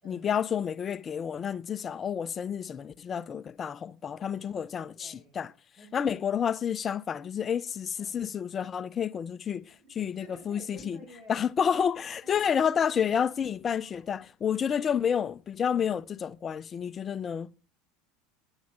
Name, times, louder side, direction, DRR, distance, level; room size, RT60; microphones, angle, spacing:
voice 1, 0.1-5.5 5.9-9.7 10.0-11.0 11.3-17.5, left 8 dB, 25° left, 0.4 m, -30 dB
voice 2, 4.9-5.4 5.8-6.5 8.0-8.2 9.8-11.5 12.2-13.1 13.8-14.0 14.7-15.1 15.7-16.0 17.1-17.6, right 1 dB, 30° right, 4.5 m, -53 dB
9.7 x 8.0 x 4.8 m
supercardioid pair, 150°, 0 cm